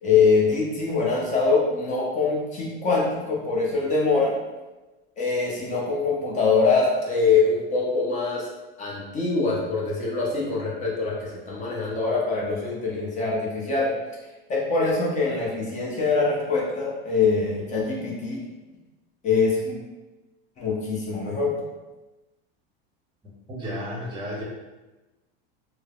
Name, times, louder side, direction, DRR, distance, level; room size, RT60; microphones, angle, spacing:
voice 1, 0.0-4.3 5.2-8.5 8.8-13.9 14.5-18.4 19.2-19.8 20.6-21.5, left 4 dB, 25° left, -4 dB, 0.7 m, -23 dB
voice 2, 23.5-24.4, equal, 15° right, -3 dB, 0.7 m, -32 dB
3.1 x 2.0 x 2.3 m, 1.1 s
supercardioid pair, 125°, 31 cm